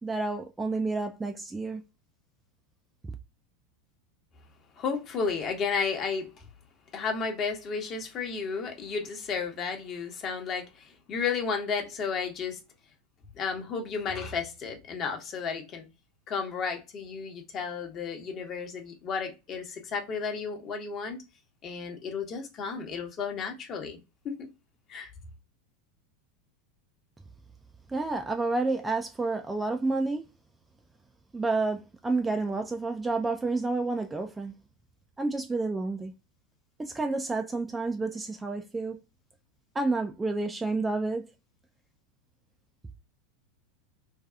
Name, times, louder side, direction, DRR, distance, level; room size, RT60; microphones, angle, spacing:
voice 1, 0.0-1.8 3.0-3.1 27.9-30.2 31.3-34.5 35.2-36.1 36.8-39.0 39.7-41.3, right 3 dB, 15° right, 0.3 m, -30 dB
voice 2, 4.8-6.3 6.9-12.6 13.4-15.8 16.3-21.2 21.6-24.0 24.2-24.5 24.9-25.1, left 5 dB, 40° left, 0.9 m, -33 dB
2.6 x 2.3 x 2.3 m
hypercardioid pair, 90°, 0 cm